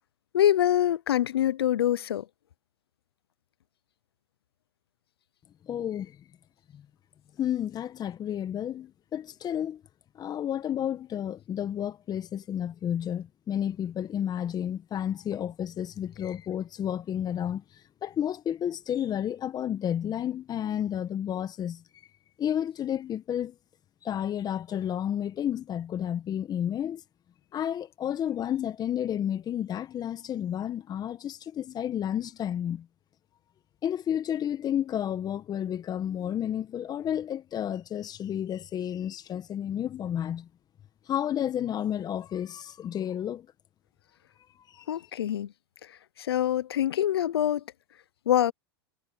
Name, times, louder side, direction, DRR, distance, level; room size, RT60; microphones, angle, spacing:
voice 1, 0.3-2.3 44.9-45.5 46.2-47.6 48.3-48.5, left 11 dB, 85° left, 0.8 m, -25 dB
voice 2, 5.7-6.2 6.7-6.8 7.4-9.8 10.2-17.6 18.0-21.8 22.4-23.5 24.0-27.0 27.5-32.9 33.8-40.5 41.1-43.5 44.7-44.8, left 10 dB, 30° left, 1.5 m, -31 dB
hypercardioid pair, 105°, 13 cm